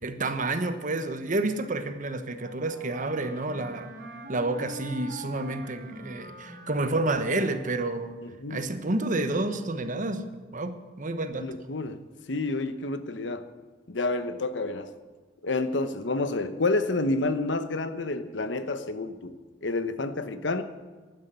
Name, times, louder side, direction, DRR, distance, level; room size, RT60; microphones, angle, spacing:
voice 1, 0.0-3.9 4.3-8.1 8.5-10.3 10.5-11.6, right 2 dB, 45° right, 9 dB, 1.1 m, -29 dB
Wind instrument woodwind instrument, 2.3-8.1, right 1 dB, 65° right, 3.6 m, -44 dB
voice 2, 8.2-8.7 11.4-12.0 12.3-13.5 13.9-14.9 15.4-19.4 19.6-20.6, left 2 dB, 80° left, 11 dB, 1.0 m, -29 dB
12.5 x 10.0 x 8.1 m, 1.4 s
head